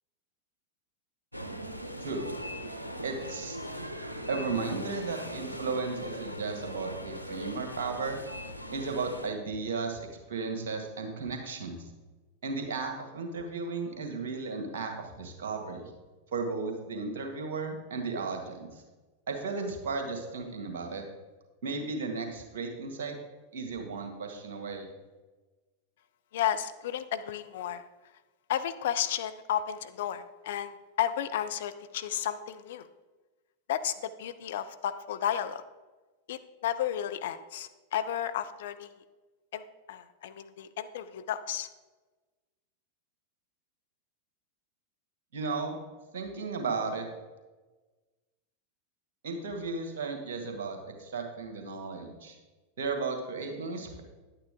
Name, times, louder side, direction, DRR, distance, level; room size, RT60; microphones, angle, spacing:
sound 1, 1.3-9.3, equal, 90° right, 0.7 m, -40 dB
voice 1, 3.0-3.6 4.3-8.2 8.7-11.8 12.4-15.9 16.3-18.8 19.3-21.1 21.6-23.2 23.5-24.9 45.3-45.8 46.1-47.1 49.2-52.4 52.8-54.0, right 4 dB, 55° right, 4 dB, 1.8 m, -35 dB
voice 2, 26.3-27.8 28.5-32.9 33.7-35.6 36.3-38.9 39.5-39.6 39.9-41.7, left 10 dB, 55° left, 11 dB, 0.5 m, -33 dB
10.5 x 8.9 x 3.6 m, 1.2 s
figure-of-eight pair, 90°, 0 cm